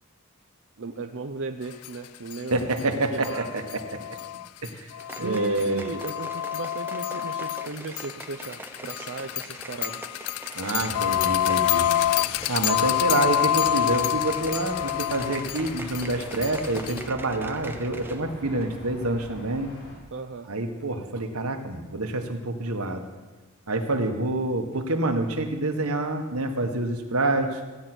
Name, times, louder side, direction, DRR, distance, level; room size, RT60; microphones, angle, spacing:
voice 1, 0.8-3.5 5.2-10.0 10.7-10.9 20.1-20.5, right 3 dB, 55° right, 5 dB, 0.7 m, -36 dB
sound 1, 1.8-1.9 2.3-2.4 2.8-2.9 3.2-17.1, left 12 dB, 85° left, 0.3 m, -27 dB
voice 2, 2.5-4.0 4.6-4.9 5.2-5.8 10.5-11.9 12.5-19.7 20.5-23.0 23.7-27.6, right 2 dB, 75° right, 5 dB, 1.6 m, -27 dB
sound 2, 5.0-18.3 18.6-18.7, right 2 dB, 10° right, 0.8 m, -43 dB
sound 3, 10.8-20.0, equal, 55° left, 5.0 m, -43 dB
16.0 x 9.6 x 6.2 m, 1.2 s
head